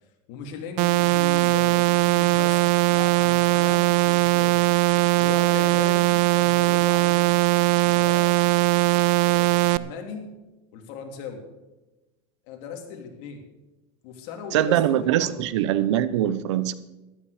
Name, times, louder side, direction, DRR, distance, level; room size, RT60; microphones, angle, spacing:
voice 1, 0.3-4.6 5.1-7.3 7.8-8.3 9.2-10.3 10.7-11.4 12.5-13.4 14.0-15.4, left 6 dB, 60° left, 3 dB, 2.9 m, -38 dB
sound 1, 0.8-9.8, right 22 dB, 55° right, 0.5 m, -20 dB
voice 2, 14.5-16.7, right 11 dB, 85° right, 16 dB, 0.9 m, -22 dB
13.5 x 12.0 x 5.0 m, 1.1 s
supercardioid pair, 135°, 15 cm